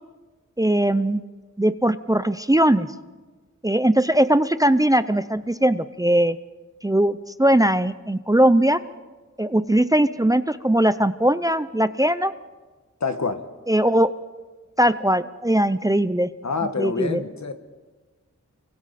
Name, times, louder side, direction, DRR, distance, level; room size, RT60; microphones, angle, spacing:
voice 1, 0.6-1.2 1.6-2.9 3.6-6.4 6.8-8.8 9.4-12.3 13.7-14.1 14.8-16.3 16.8-17.2, right 1 dB, 10° right, 13 dB, 0.6 m, -20 dB
voice 2, 13.0-13.4 16.4-17.5, left 4 dB, 60° left, 8 dB, 1.6 m, -26 dB
29.0 x 24.0 x 4.2 m, 1.3 s
wide cardioid pair, 65°, 30 cm